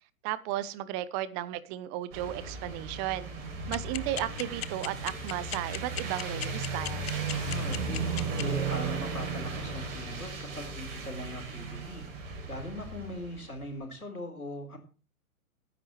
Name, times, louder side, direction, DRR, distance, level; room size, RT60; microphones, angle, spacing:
voice 1, 0.2-3.3 3.7-7.1, right 13 dB, 20° right, 0.8 m, -34 dB
sound 1, 2.1-13.6, right 4 dB, 40° right, 7.7 m, -35 dB
sound 2, 3.7-8.4, left 12 dB, 45° left, 0.7 m, -35 dB
voice 2, 7.3-8.0 8.4-12.1 12.5-14.8, equal, 85° left, 4.4 m, -40 dB
21.0 x 10.0 x 3.2 m
figure-of-eight pair, 115°, 43 cm